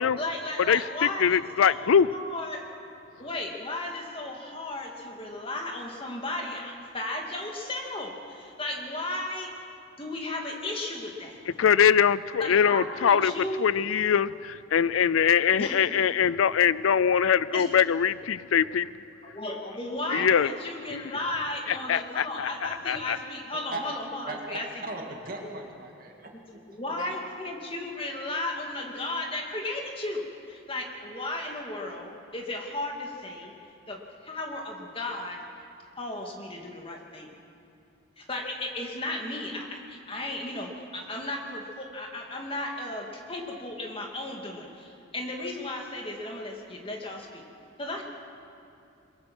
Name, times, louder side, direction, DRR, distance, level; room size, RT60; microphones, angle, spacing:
voice 1, 0.2-2.7 3.2-9.5 10.0-11.4 12.5-13.7 15.6-15.8 17.5-17.8 19.2-24.9 25.4-25.6 26.3-26.4 26.7-33.5 33.9-35.4 36.0-37.3 38.2-47.4 47.8-48.0, left 2 dB, 25° left, 1 dB, 2.3 m, -35 dB
voice 2, 1.2-2.1 11.6-13.3 13.6-18.9 20.1-20.5 20.9-21.1 21.9-22.5 22.9-23.2, left 7 dB, 90° left, 18 dB, 0.4 m, -22 dB
voice 3, 24.3-26.6 27.0-27.1, right 2 dB, 45° right, 1 dB, 2.5 m, -38 dB
22.5 x 22.0 x 6.1 m, 2.6 s
head